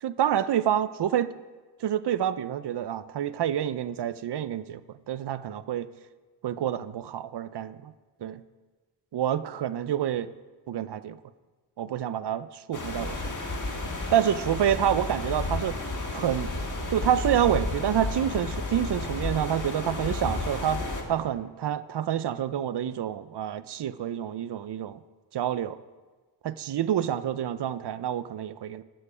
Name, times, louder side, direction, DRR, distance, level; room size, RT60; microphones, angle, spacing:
voice 1, 0.0-1.3 1.8-5.9 6.4-7.9 8.2-8.4 9.1-10.3 10.7-11.2 11.8-13.3 14.1-15.8 16.1-16.5 16.9-25.0 25.3-25.8 26.4-28.8, right 10 dB, 65° right, 15 dB, 0.5 m, -28 dB
sound 1, 12.7-21.0, left 2 dB, 40° left, 1.4 m, -32 dB
12.0 x 6.8 x 4.9 m, 1.3 s
wide cardioid pair, 120°, 45 cm